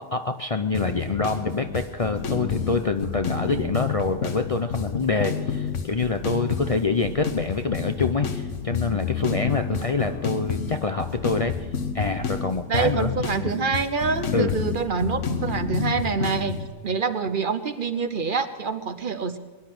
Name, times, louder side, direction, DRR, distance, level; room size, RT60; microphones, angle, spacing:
voice 1, 0.0-11.5 11.9-13.1 14.3-14.5, left 4 dB, 40° left, 7 dB, 0.6 m, -26 dB
sound 1, 0.7-16.7, left 6 dB, 90° left, 1.5 m, -29 dB
voice 2, 12.7-16.6 16.8-19.4, right 5 dB, 50° right, 10 dB, 0.9 m, -26 dB
21.5 x 10.5 x 6.0 m, 1.4 s
omnidirectional pair, 1.2 m